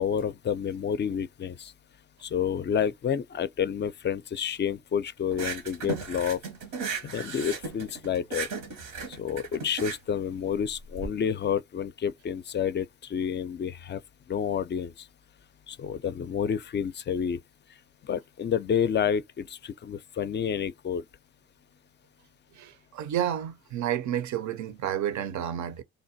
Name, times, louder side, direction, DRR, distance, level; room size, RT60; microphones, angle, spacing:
voice 1, 0.0-1.7 2.2-6.4 7.0-8.5 9.2-14.0 14.3-15.1 15.7-17.4 18.0-21.0, left 8 dB, 35° left, 0.4 m, -29 dB
sound 1, 5.3-11.1, right 5 dB, 85° right, 1.0 m, -36 dB
voice 2, 22.5-25.8, right 10 dB, 60° right, 0.6 m, -30 dB
3.3 x 2.1 x 2.6 m
supercardioid pair, 55°, 33 cm